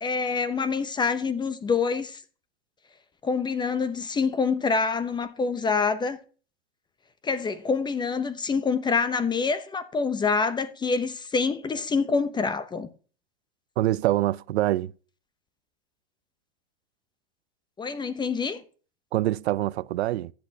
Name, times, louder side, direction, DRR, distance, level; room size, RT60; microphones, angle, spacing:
voice 1, 0.0-2.2 3.2-6.2 7.2-12.9 17.8-18.6, left 5 dB, 15° left, 0.7 m, -26 dB
voice 2, 13.8-14.9 19.1-20.3, right 15 dB, 80° right, 0.5 m, -25 dB
14.5 x 8.7 x 2.8 m
hypercardioid pair, 115°, 32 cm